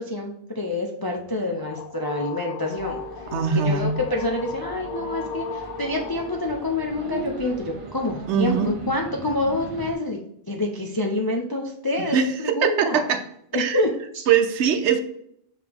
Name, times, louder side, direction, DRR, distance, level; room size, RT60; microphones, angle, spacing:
voice 1, 0.0-3.0 3.5-13.0 13.5-14.3, left 2 dB, 35° left, 1 dB, 0.4 m, -27 dB
sound 1, 1.2-7.3, left 5 dB, 85° left, 1.0 m, -36 dB
sound 2, 2.7-9.9, right 3 dB, 35° right, 0.6 m, -39 dB
voice 2, 3.3-3.9 8.3-8.7 12.1-13.2 13.6-13.8 14.3-15.0, right 6 dB, 65° right, 8 dB, 0.9 m, -21 dB
5.8 x 4.8 x 3.5 m, 0.71 s
omnidirectional pair, 1.3 m